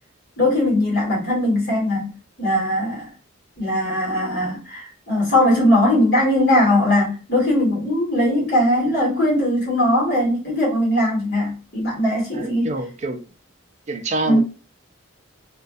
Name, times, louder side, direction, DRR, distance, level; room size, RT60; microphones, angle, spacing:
voice 1, 0.4-3.1 3.6-12.7 14.2-14.4, left 1 dB, 55° left, 1.4 m, -20 dB
voice 2, 12.3-13.2 13.9-14.4, right 2 dB, 35° right, 0.4 m, -26 dB
2.5 x 2.2 x 2.3 m
head